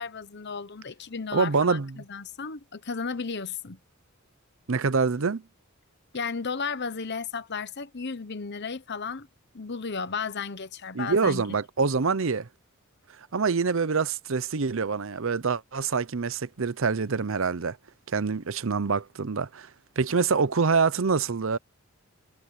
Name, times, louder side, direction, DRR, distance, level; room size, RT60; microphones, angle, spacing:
voice 1, 0.0-3.8 6.1-9.3 9.5-11.4, left 5 dB, 55° left, 1.0 m, -34 dB
voice 2, 1.3-2.0 4.7-5.4 10.9-12.5 13.3-17.8 18.1-19.7 20.0-21.6, right 4 dB, 65° right, 0.7 m, -25 dB
head